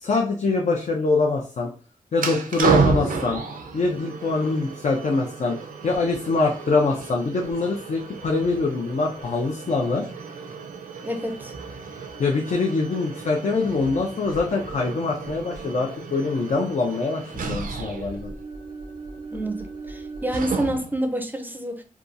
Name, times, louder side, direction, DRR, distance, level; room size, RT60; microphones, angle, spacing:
voice 1, 0.0-1.7 2.1-3.4 3.7-5.6 5.8-10.1 12.2-18.3, left 3 dB, 55° left, 0 dB, 0.5 m, -24 dB
sound 1, 2.1-21.0, right 4 dB, 75° right, 0.5 m, -31 dB
voice 2, 11.0-11.5 19.3-21.8, right 1 dB, 15° right, 5 dB, 0.4 m, -28 dB
2.8 x 2.3 x 2.5 m, 0.39 s
cardioid pair, 65°, 14 cm